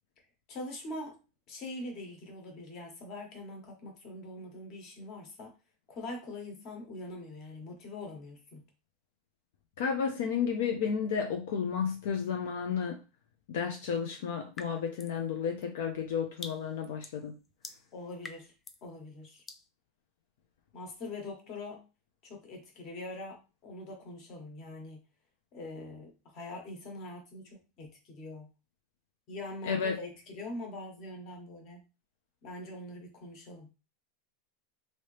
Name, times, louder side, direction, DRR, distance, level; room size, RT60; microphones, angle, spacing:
voice 1, 0.5-1.2 1.5-5.5 5.9-8.6 17.9-18.5 18.8-19.4 20.7-21.8 22.2-25.0 25.5-28.5 29.3-31.8 32.4-33.7, left 2 dB, 40° left, 2 dB, 1.2 m, -43 dB
voice 2, 9.8-13.0 13.5-17.4 29.7-30.0, left 6 dB, 75° left, 3 dB, 0.6 m, -32 dB
sound 1, 14.5-15.2 15.6-18.9 19.5-19.7, left 4 dB, 15° left, 0.4 m, -47 dB
3.1 x 2.8 x 3.2 m, 0.30 s
supercardioid pair, 155°, 0 cm